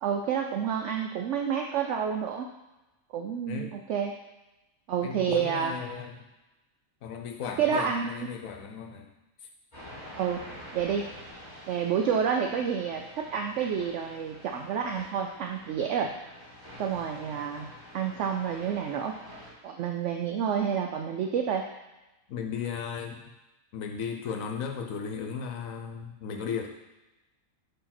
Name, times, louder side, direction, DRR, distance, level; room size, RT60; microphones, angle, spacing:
voice 1, 0.0-2.5 3.1-4.1 4.9-5.7 7.6-8.3 10.2-10.4 10.7-11.1 11.7-16.1 16.8-17.7 17.9-19.1 19.6-21.7, right 7 dB, 65° right, 3 dB, 0.8 m, -29 dB
voice 2, 3.5-3.8 5.0-6.2 7.0-9.1 22.3-23.3 23.7-26.7, left 6 dB, 70° left, 4 dB, 1.2 m, -36 dB
sound 1, 9.7-19.5, equal, 30° left, 2.5 m, -48 dB
5.0 x 4.7 x 5.9 m, 1.0 s
omnidirectional pair, 1.5 m